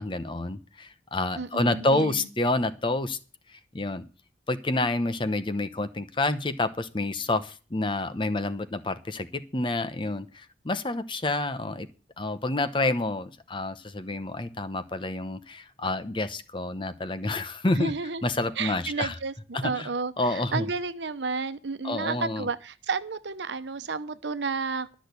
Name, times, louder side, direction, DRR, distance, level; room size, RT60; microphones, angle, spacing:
voice 1, 0.0-3.2 3.5-4.0 4.5-9.3 9.5-11.9 12.2-17.9 18.2-19.2 19.5-19.9 20.2-20.7 21.8-22.5, left 2 dB, 30° left, 12 dB, 0.9 m, -28 dB
voice 2, 1.4-2.3 17.8-18.3 18.6-19.3 19.6-24.9, right 4 dB, 85° right, 11 dB, 0.9 m, -31 dB
12.5 x 6.2 x 8.3 m, 0.36 s
head